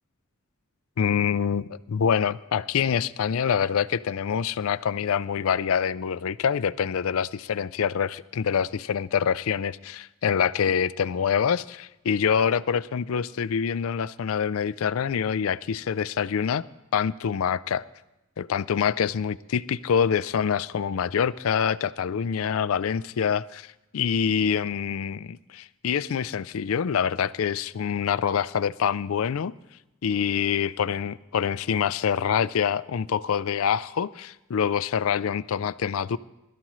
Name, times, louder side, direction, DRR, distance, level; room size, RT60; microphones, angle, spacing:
voice 1, 1.0-16.6 16.9-17.8 18.4-29.5 30.0-36.2, left 7 dB, 70° left, 17 dB, 0.4 m, -26 dB
21.0 x 13.0 x 3.1 m, 0.94 s
head